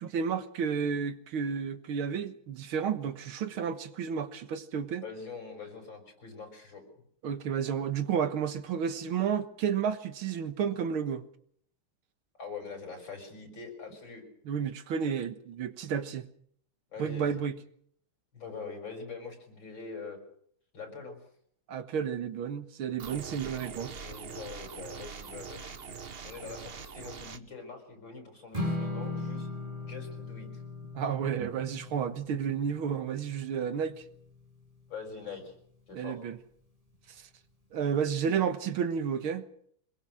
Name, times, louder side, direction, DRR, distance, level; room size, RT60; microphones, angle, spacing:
voice 1, 0.0-5.0 7.2-11.2 14.5-16.3 17.0-17.6 21.7-24.1 30.9-34.0 35.9-36.4 37.7-39.4, right 7 dB, 90° right, 2.2 m, -31 dB
voice 2, 5.0-6.8 12.4-14.2 16.9-17.4 18.3-20.2 20.7-21.2 23.9-25.9 26.2-29.5 29.8-30.6 34.9-35.5 35.9-36.2, left 5 dB, 65° left, 6.7 m, -43 dB
sound 1, 23.0-27.4, right 6 dB, 40° right, 0.9 m, -43 dB
Strum, 28.5-34.8, left 2 dB, 15° right, 5.4 m, -39 dB
24.5 x 21.5 x 6.4 m
omnidirectional pair, 2.2 m